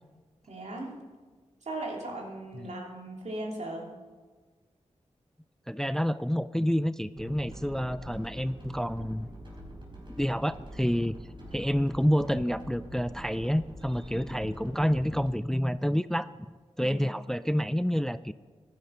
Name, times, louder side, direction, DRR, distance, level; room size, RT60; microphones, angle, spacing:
voice 1, 0.5-1.0 1.6-3.9 16.8-17.0, right 1 dB, 75° right, -1 dB, 2.9 m, -37 dB
voice 2, 5.7-9.3 10.2-11.2 11.5-16.3 16.8-18.3, equal, 5° left, 15 dB, 0.4 m, -28 dB
sound 1, 7.2-15.3, equal, 45° right, 5.5 m, -45 dB
14.0 x 10.5 x 5.7 m, 1.4 s
cardioid pair, 60°, 12 cm